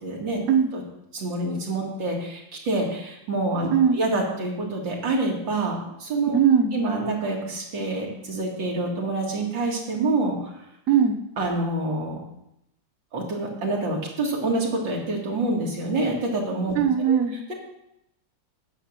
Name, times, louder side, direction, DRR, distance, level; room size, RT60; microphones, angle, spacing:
voice 1, 0.0-0.4 0.7-0.8 1.1-6.3 6.7-10.5 11.4-12.2 13.1-16.7 17.1-17.2, right 2 dB, 85° right, -1 dB, 3.0 m, -27 dB
voice 2, 3.7-4.0 6.3-6.7 10.9-11.2 16.7-17.4, right 7 dB, 55° right, 5 dB, 1.3 m, -19 dB
9.9 x 7.2 x 6.6 m, 0.82 s
omnidirectional pair, 2.0 m